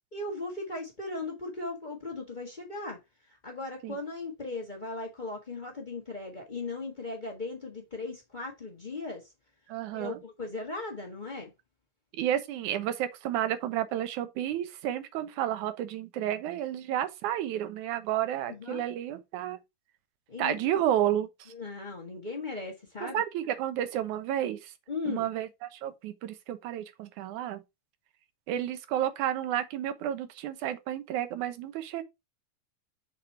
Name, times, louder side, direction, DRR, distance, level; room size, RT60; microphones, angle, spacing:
voice 1, 0.1-3.0 3.4-9.2 9.9-11.5 18.5-18.8 20.3-20.6 21.5-23.2 24.9-25.3, left 3 dB, 45° left, 0.5 m, -37 dB
voice 2, 9.7-10.2 12.1-19.6 20.4-21.5 23.0-24.7 25.1-27.6 28.5-32.0, right 11 dB, 70° right, 2.3 m, -31 dB
8.0 x 4.3 x 4.5 m
omnidirectional pair, 3.8 m